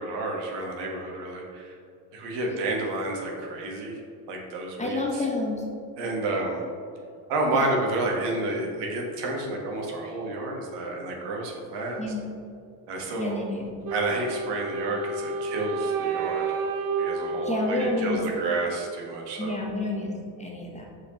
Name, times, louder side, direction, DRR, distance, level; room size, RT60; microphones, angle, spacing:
voice 1, 0.0-1.8 2.1-4.0 4.3-5.2 6.0-6.6 7.3-12.0 12.9-13.4 13.9-16.6 17.0-19.5, right 2 dB, 70° right, 0 dB, 1.4 m, -30 dB
voice 2, 4.8-5.6 7.5-7.6 12.0-12.2 13.2-13.7 17.4-18.2 19.4-20.9, left 2 dB, 15° left, -1 dB, 0.9 m, -29 dB
Wind instrument woodwind instrument, 13.8-18.9, right 4 dB, 50° right, 0.6 m, -31 dB
6.4 x 5.2 x 3.0 m, 2.4 s
supercardioid pair, 105°, 43 cm